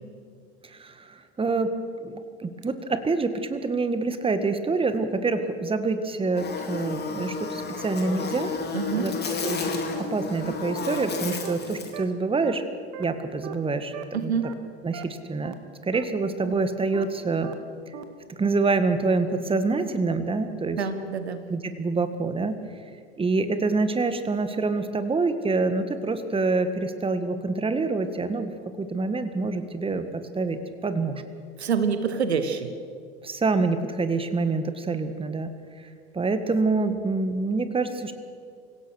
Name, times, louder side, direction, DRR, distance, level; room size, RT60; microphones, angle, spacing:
voice 1, 0.7-1.7 2.0-8.5 9.0-9.2 9.4-9.8 10.1-12.6 13.0-14.3 14.8-15.5 15.8-17.5 18.4-20.8 21.5-22.6 23.2-28.5 28.8-30.1 30.3-31.2 33.2-35.5 36.1-38.1, right 3 dB, 15° right, 10 dB, 1.7 m, -26 dB
Buzz, 6.4-12.0, left 4 dB, 30° left, 3.4 m, -32 dB
voice 2, 8.7-9.1 14.1-14.5 20.7-21.4 31.6-32.7, right 6 dB, 85° right, 10 dB, 1.5 m, -26 dB
sound 1, 9.4-9.5 9.9-10.0 10.4-10.5 10.9-11.0 11.4-11.5 11.9-12.0 12.4-12.5 12.9-13.0 13.4-13.5 13.9-14.0 14.4-14.5 14.9-15.0 15.4-15.5 15.9-16.0 16.4-16.5 16.9-17.0 17.4-17.5 17.9-18.0 18.4-18.5, right 15 dB, 55° right, 1.8 m, -37 dB
25.5 x 17.0 x 6.5 m, 2.2 s
figure-of-eight pair, 75°, 32 cm